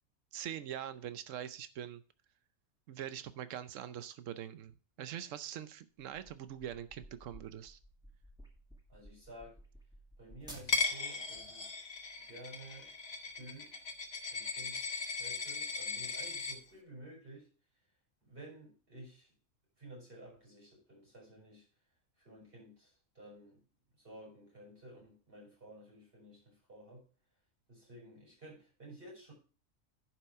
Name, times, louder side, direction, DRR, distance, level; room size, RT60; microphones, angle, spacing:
voice 1, 0.3-2.0 2.9-7.8, right 10 dB, 80° right, 13 dB, 1.1 m, -43 dB
sound 1, 6.1-11.1, equal, 5° right, 2.1 m, -55 dB
voice 2, 8.9-9.6 10.2-11.8 12.2-12.9 13.4-13.7 14.3-17.5 18.2-19.3 19.8-21.6 22.2-23.6 24.0-27.1 27.7-29.3, right 1 dB, 45° right, -4 dB, 6.6 m, -53 dB
Coin (dropping), 10.7-16.5, left 4 dB, 55° left, 1.4 m, -38 dB
11.0 x 6.1 x 4.6 m, 0.35 s
omnidirectional pair, 1.3 m